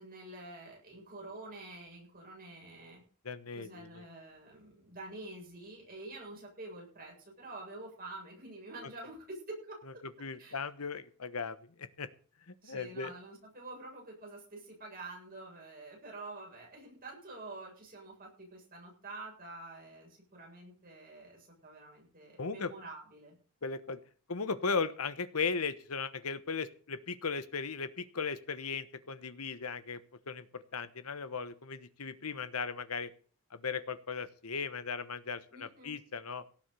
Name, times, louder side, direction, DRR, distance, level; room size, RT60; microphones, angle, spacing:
voice 1, 0.0-3.0 3.5-9.8 10.4-10.6 12.6-23.3 35.5-36.0, right 2 dB, 40° right, -1 dB, 7.7 m, -47 dB
voice 2, 3.2-4.0 10.2-12.1 12.5-13.1 22.4-22.7 23.6-24.0 24.3-30.0 30.3-33.1 33.5-36.4, left 5 dB, 80° left, 13 dB, 1.2 m, -37 dB
17.5 x 7.3 x 6.8 m, 0.41 s
head